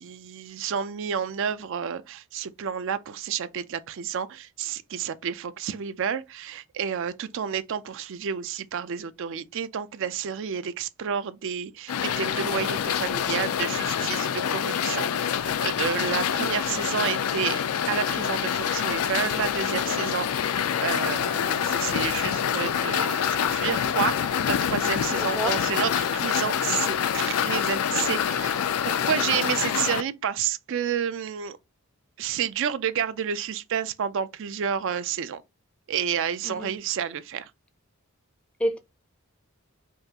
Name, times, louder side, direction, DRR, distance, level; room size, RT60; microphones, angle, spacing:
voice 1, 0.0-17.6 17.9-31.6 32.2-35.4 35.9-37.5, right 8 dB, 60° right, 0.4 m, -30 dB
sound 1, 11.9-30.0, left 8 dB, 80° left, 0.4 m, -26 dB
voice 2, 25.1-25.6 36.4-36.7 38.6-38.8, equal, 5° left, 0.4 m, -29 dB
5.5 x 2.4 x 2.8 m
head